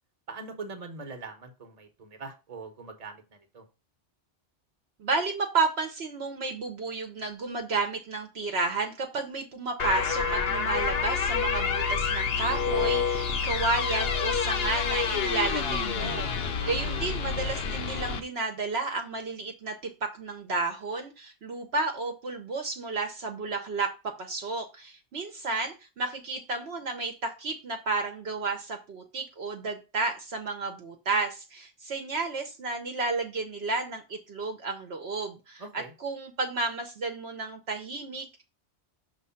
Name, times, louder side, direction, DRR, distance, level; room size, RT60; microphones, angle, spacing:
voice 1, 0.3-3.6 16.5-17.1 35.6-35.9, right 4 dB, 35° right, 6 dB, 1.1 m, -42 dB
voice 2, 5.0-38.4, right 3 dB, 60° right, 4 dB, 1.0 m, -32 dB
sound 1, 9.8-18.2, left 6 dB, 60° left, 0.9 m, -28 dB
6.3 x 3.1 x 5.6 m, 0.29 s
omnidirectional pair, 1.2 m